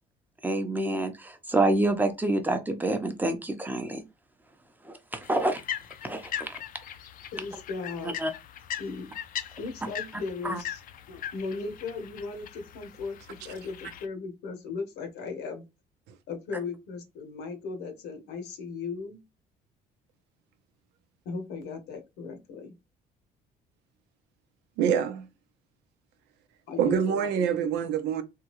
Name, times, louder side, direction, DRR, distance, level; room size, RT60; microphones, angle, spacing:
voice 1, 0.4-4.0 5.1-5.6 6.0-6.6 8.2-8.3 10.4-10.6, right 2 dB, 10° right, 0.7 m, -27 dB
sound 1, 5.2-14.1, left 10 dB, 55° left, 0.5 m, -40 dB
voice 2, 7.3-8.2 8.8-9.1 9.6-10.8 11.1-15.6 16.3-19.2 21.2-22.7 26.7-28.0, left 4 dB, 85° left, 1.1 m, -37 dB
voice 3, 24.8-25.3 26.8-28.2, right 8 dB, 85° right, 0.7 m, -25 dB
3.6 x 2.3 x 3.0 m
cardioid pair, 110°, 17 cm